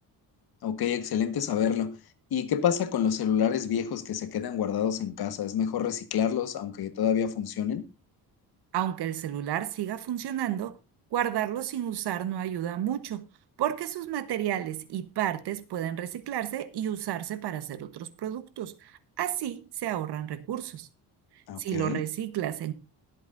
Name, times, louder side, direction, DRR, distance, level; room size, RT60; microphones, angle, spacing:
voice 1, 0.6-1.9 2.3-7.8 21.5-22.0, left 8 dB, 70° left, 1.5 m, -28 dB
voice 2, 8.7-10.7 11.1-13.2 13.6-20.9 21.6-22.7, right 11 dB, 85° right, 1.2 m, -31 dB
22.0 x 8.2 x 2.6 m
cardioid pair, 135°, 38 cm